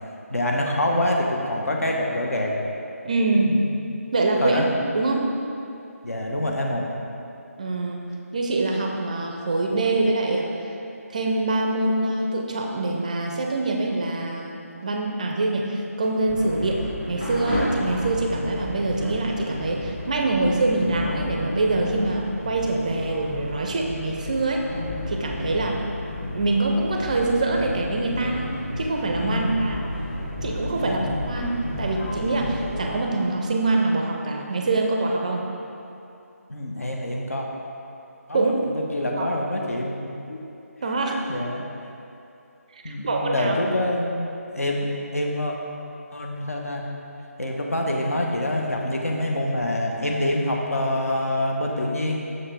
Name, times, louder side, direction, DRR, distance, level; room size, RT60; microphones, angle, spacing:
voice 1, 0.3-2.5 3.4-3.6 4.4-4.7 6.0-6.8 25.4-25.7 29.3-29.6 30.7-31.1 36.5-37.5 38.3-40.4 41.3-41.6 42.8-45.6 46.1-46.8 47.4-52.2, left 1 dB, 65° left, 0 dB, 1.1 m, -26 dB
voice 2, 3.0-3.6 4.1-4.6 4.9-5.3 7.6-8.0 8.3-10.7 11.1-16.8 17.1-24.6 25.1-25.8 26.3-28.5 28.8-29.8 30.4-35.5 38.3-38.5 39.2-39.3 40.8-41.2 42.7-43.6, right 2 dB, 30° right, 1 dB, 0.5 m, -24 dB
sound 1, 16.3-33.0, left 1 dB, 35° left, 1.6 m, -32 dB
7.0 x 6.4 x 3.4 m, 2.8 s
figure-of-eight pair, 155°, 8 cm